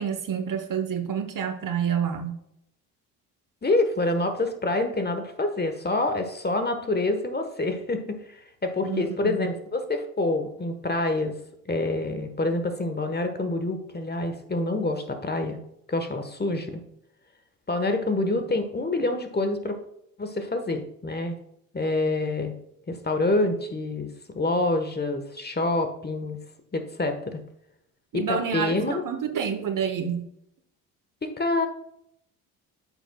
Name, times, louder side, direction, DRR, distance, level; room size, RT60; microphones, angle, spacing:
voice 1, 0.0-2.4 8.8-9.4 18.4-18.5 28.1-30.3, right 7 dB, 45° right, 8 dB, 1.1 m, -28 dB
voice 2, 3.6-11.3 11.7-15.6 15.9-16.8 17.7-19.8 20.2-21.4 21.7-22.5 22.9-26.4 26.7-27.4 28.1-29.0 31.4-31.7, left 2 dB, 20° left, 7 dB, 1.2 m, -27 dB
8.8 x 7.0 x 2.3 m, 0.74 s
supercardioid pair, 65°, 44 cm